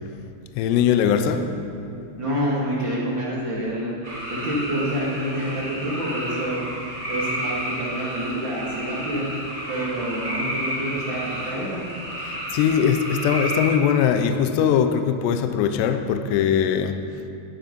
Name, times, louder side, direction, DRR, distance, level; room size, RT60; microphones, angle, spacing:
voice 1, 0.5-1.5 12.2-17.0, left 8 dB, 90° left, 8 dB, 2.5 m, -21 dB
voice 2, 2.2-3.9 4.3-6.6 7.1-9.2 9.7-11.8, right 1 dB, 65° right, -7 dB, 1.2 m, -27 dB
sound 1, 4.0-13.7, equal, 40° right, 0.9 m, -31 dB
12.0 x 11.0 x 5.2 m, 2.6 s
omnidirectional pair, 5.6 m